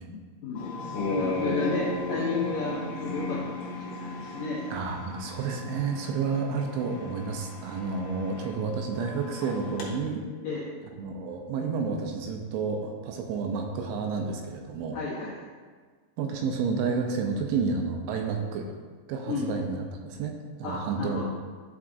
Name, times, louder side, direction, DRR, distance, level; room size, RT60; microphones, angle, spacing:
voice 1, 0.1-4.6 10.4-10.7 14.9-15.4 19.3-19.5 20.6-21.2, left 4 dB, 85° left, -6 dB, 1.9 m, -33 dB
sound 1, 0.5-9.9, left 2 dB, 65° left, 2.4 m, -35 dB
voice 2, 4.7-10.2 10.9-15.0 16.2-18.7 19.1-21.2, right 5 dB, 80° right, 2 dB, 2.8 m, -30 dB
11.5 x 4.8 x 2.6 m, 1.5 s
omnidirectional pair, 5.6 m